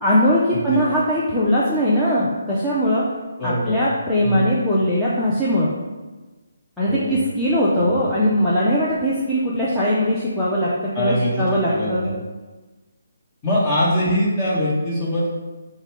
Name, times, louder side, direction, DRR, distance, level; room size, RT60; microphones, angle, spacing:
voice 1, 0.0-3.1 3.4-5.7 6.8-12.1, equal, 5° left, -10 dB, 0.6 m, -20 dB
voice 2, 3.4-3.8 4.2-4.5 6.9-7.2 10.9-12.1 13.4-15.3, equal, 25° left, -7 dB, 1.4 m, -23 dB
4.9 x 2.2 x 4.8 m, 1.2 s
hypercardioid pair, 150°, 0 cm